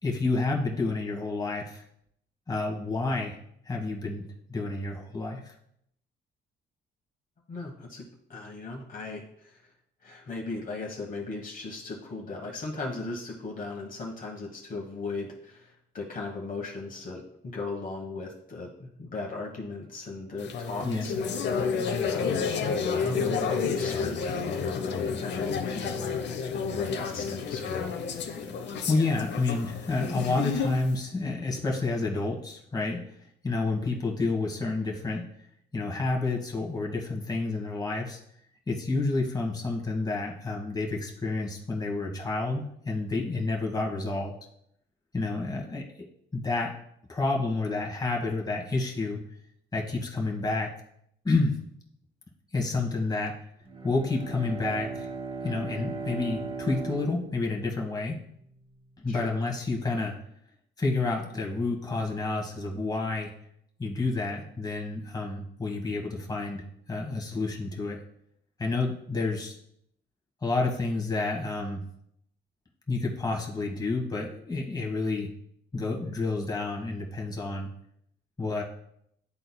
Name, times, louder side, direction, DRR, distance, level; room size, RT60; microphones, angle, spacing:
voice 1, 0.0-1.8 2.5-3.4 3.6-4.2 4.5-5.5 20.8-21.1 28.9-33.0 33.4-35.2 35.7-38.2 38.7-44.3 45.1-45.9 46.3-46.7 47.1-49.2 49.7-50.7 51.2-51.6 52.5-53.3 53.8-55.1 55.4-58.2 59.0-60.1 60.8-63.3 63.8-66.6 66.9-68.0 68.6-69.6 70.4-71.8 72.9-75.3 75.7-77.7 78.4-78.6, left 3 dB, 20° left, 0 dB, 1.4 m, -29 dB
voice 2, 7.5-8.0 8.3-9.7 10.0-22.5 22.9-26.2 26.7-27.9 59.1-59.3, left 3 dB, 45° left, -1 dB, 1.3 m, -37 dB
sound 1, 20.4-30.9, left 5 dB, 60° left, 0.8 m, -30 dB
Bowed string instrument, 53.6-58.4, right 4 dB, 25° right, 0.7 m, -38 dB
11.0 x 3.9 x 2.2 m, 0.73 s
cardioid pair, 90°, 20 cm